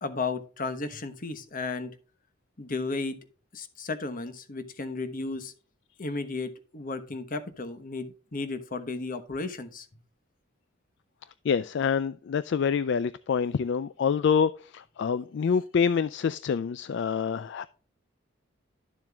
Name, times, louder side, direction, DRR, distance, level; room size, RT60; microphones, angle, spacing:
voice 1, 0.0-1.9 2.6-3.2 3.5-5.5 6.0-9.9, left 3 dB, 40° left, 1.0 m, -34 dB
voice 2, 11.4-17.6, left 6 dB, 60° left, 0.3 m, -26 dB
12.0 x 7.4 x 2.3 m
head